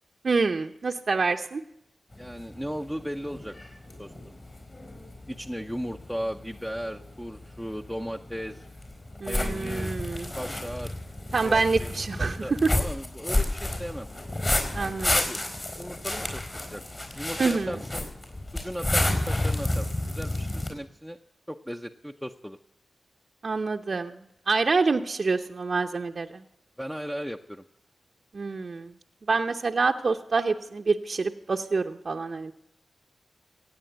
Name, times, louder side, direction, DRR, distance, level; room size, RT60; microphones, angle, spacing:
voice 1, 0.2-1.6 9.2-10.3 11.3-12.7 14.7-15.1 17.4-17.7 23.4-24.1 24.5-26.3 28.3-28.9 29.3-32.5, right 4 dB, 60° right, 4 dB, 0.7 m, -26 dB
sound 1, 2.1-20.7, left 1 dB, 35° left, 4.1 m, -31 dB
voice 2, 2.2-3.5 4.0-4.3 5.3-8.7 9.3-10.0 10.4-10.9 11.4-14.1 15.1-15.4 15.8-16.8 17.2-18.0 18.5-21.2 21.5-22.6 26.8-27.6, equal, 5° left, 4 dB, 0.7 m, -36 dB
16.5 x 8.6 x 7.9 m, 0.78 s
cardioid pair, 45°, 0 cm